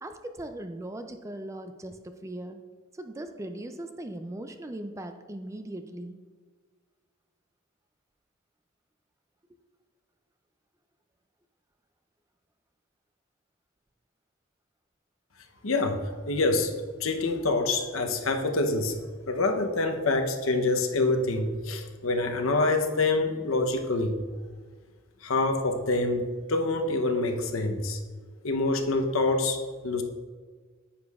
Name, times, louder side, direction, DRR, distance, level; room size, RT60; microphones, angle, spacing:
voice 1, 0.0-2.6 2.9-6.2, right 1 dB, 15° right, 7 dB, 0.3 m, -39 dB
voice 2, 15.6-16.0 16.3-16.7 17.0-19.0 19.3-24.2 25.2-28.0 28.4-29.6 29.8-30.0, left 2 dB, 75° left, 5 dB, 0.8 m, -26 dB
9.6 x 8.2 x 2.4 m, 1.5 s
head